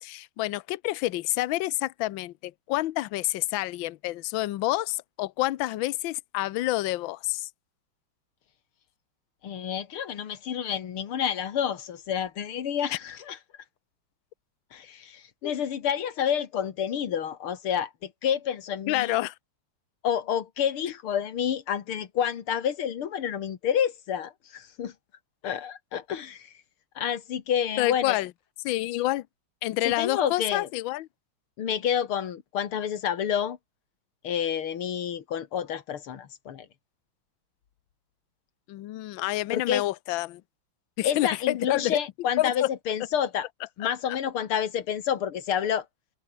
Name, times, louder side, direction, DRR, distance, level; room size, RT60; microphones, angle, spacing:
voice 1, 0.0-7.5 12.9-13.0 15.4-15.5 18.9-19.3 27.8-28.3 28.6-29.3 29.6-31.1 38.7-40.4 41.0-42.0 42.4-42.7 43.8-44.2, left 17 dB, 75° left, 1.4 m, -28 dB
voice 2, 9.4-13.4 14.7-19.1 20.0-24.9 25.4-26.5 27.0-28.2 29.9-30.7 31.6-33.6 34.2-36.7 39.5-39.8 41.0-43.5 43.8-45.9, left 9 dB, 90° left, 2.5 m, -29 dB
omnidirectional pair, 2.3 m